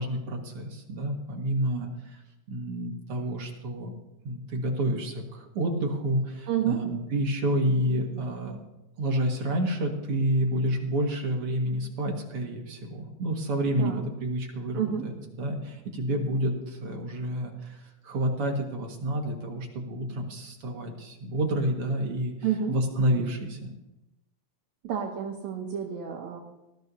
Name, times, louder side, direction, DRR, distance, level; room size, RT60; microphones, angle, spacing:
voice 1, 0.0-2.2 2.5-3.9 4.2-8.6 9.0-22.3 22.7-23.7, right 1 dB, 55° right, 1 dB, 2.5 m, -29 dB
voice 2, 6.5-6.8 13.8-14.0 14.8-15.0 22.4-22.8 24.8-26.4, right 9 dB, 75° right, 0 dB, 2.3 m, -29 dB
19.0 x 14.0 x 2.7 m, 0.95 s
omnidirectional pair, 3.3 m